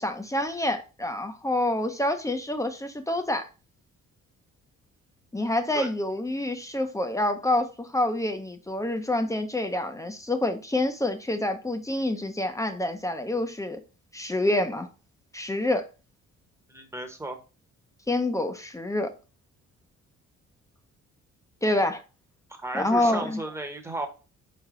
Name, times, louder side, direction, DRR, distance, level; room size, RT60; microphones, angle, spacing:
voice 1, 0.0-3.5 5.3-13.8 14.1-14.9 15.3-15.9 18.1-19.1 21.6-22.0 22.7-23.4, left 1 dB, 10° left, 0.6 m, -27 dB
voice 2, 16.7-17.4 22.6-24.1, right 2 dB, 10° right, 0.9 m, -34 dB
4.2 x 3.3 x 3.6 m
cardioid pair, 90°, 30 cm